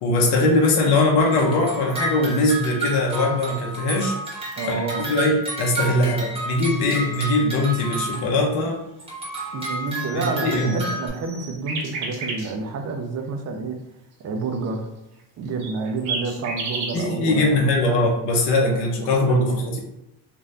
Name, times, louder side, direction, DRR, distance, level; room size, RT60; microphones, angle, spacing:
voice 1, 0.0-4.1 4.7-4.8 5.1-8.8 10.1-10.8 16.9-19.8, left 2 dB, 60° left, -1 dB, 0.7 m, -21 dB
sound 1, 1.2-8.6 9.0-11.1, right 2 dB, 10° right, 0.7 m, -31 dB
voice 2, 4.6-5.1 9.5-13.8 14.2-14.9 15.4-18.0 19.3-19.6, right 4 dB, 35° right, 4 dB, 0.4 m, -29 dB
sound 2, 10.0-12.5 15.6-17.1, right 3 dB, 65° right, 1.0 m, -32 dB
2.6 x 2.5 x 3.2 m, 0.92 s
cardioid pair, 140°, 47 cm